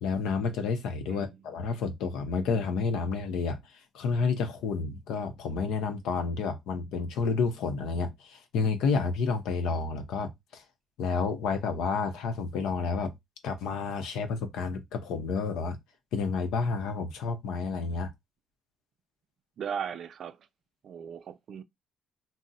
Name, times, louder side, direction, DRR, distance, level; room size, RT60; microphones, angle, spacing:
voice 1, 0.0-3.6 3.9-10.6 11.0-13.1 13.4-15.8 16.1-18.1, left 4 dB, 85° left, 0.6 m, -30 dB
voice 2, 1.1-1.4 19.6-20.4 20.8-21.6, right 7 dB, 50° right, 0.3 m, -37 dB
2.4 x 2.0 x 3.9 m
cardioid pair, 155°, 0 cm